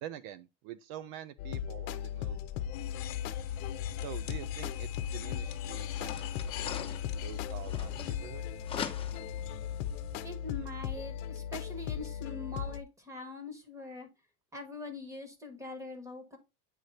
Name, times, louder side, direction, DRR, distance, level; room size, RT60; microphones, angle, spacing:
voice 1, 0.0-2.4 4.0-8.5, right 12 dB, 60° right, 0.6 m, -46 dB
sound 1, 1.4-12.8, left 9 dB, 60° left, 0.8 m, -38 dB
sound 2, 2.7-10.2, left 13 dB, 40° left, 1.1 m, -43 dB
sound 3, 5.8-8.3 8.6-9.4, left 8 dB, 15° left, 1.0 m, -42 dB
voice 2, 10.2-14.1 14.5-16.4, left 3 dB, 10° right, 1.4 m, -43 dB
9.2 x 3.3 x 4.1 m
cardioid pair, 155°, 36 cm